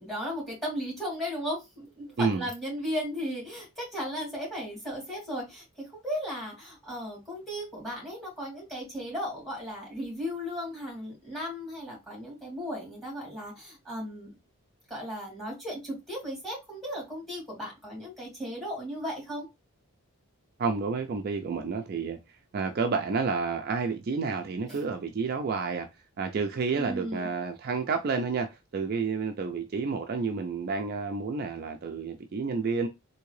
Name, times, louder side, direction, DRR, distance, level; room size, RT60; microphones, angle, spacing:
voice 1, 0.0-14.3 14.9-19.5 24.7-24.8 26.7-27.3, equal, ahead, 2.2 m, -36 dB
voice 2, 20.6-22.2 22.5-25.9 26.2-32.9, right 4 dB, 45° right, 0.4 m, -30 dB
3.6 x 2.7 x 3.1 m
head